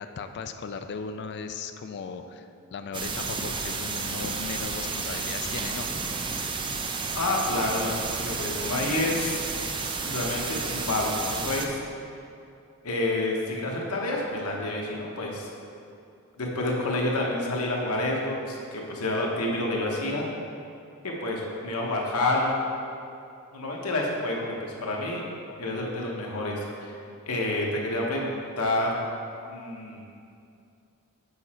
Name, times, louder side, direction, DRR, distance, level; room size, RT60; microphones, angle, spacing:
voice 1, 0.0-5.9, left 5 dB, 50° left, 8 dB, 0.4 m, -37 dB
sound 1, 2.9-11.7, right 4 dB, 20° right, 0.4 m, -31 dB
voice 2, 7.1-9.4 10.0-11.8 12.8-15.5 16.4-20.3 21.0-22.6 23.5-25.2 25.6-27.0 27.3-28.9 29.5-30.0, left 2 dB, 90° left, -2 dB, 1.1 m, -28 dB
6.9 x 5.0 x 4.3 m, 2.6 s
head